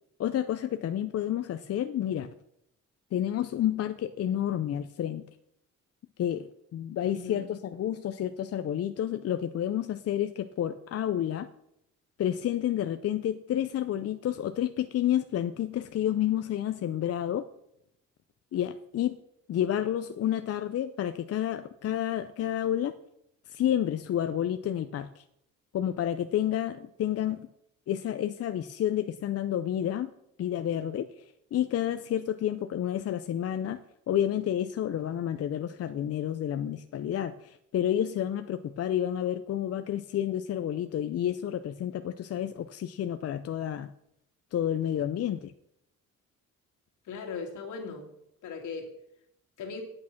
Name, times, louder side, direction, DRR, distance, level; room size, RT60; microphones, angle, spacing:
voice 1, 0.2-2.3 3.1-5.2 6.2-11.5 12.2-17.5 18.5-19.1 19.5-22.9 23.5-25.2 25.7-27.5 27.9-30.1 30.4-31.1 31.5-33.8 34.1-43.9 44.5-45.5, left 11 dB, 55° left, 10 dB, 0.6 m, -30 dB
voice 2, 7.0-7.5 47.0-48.1 48.4-48.9 49.6-49.8, left 5 dB, 80° left, 1 dB, 2.6 m, -38 dB
8.7 x 8.4 x 5.9 m, 0.79 s
cardioid pair, 90°, 30 cm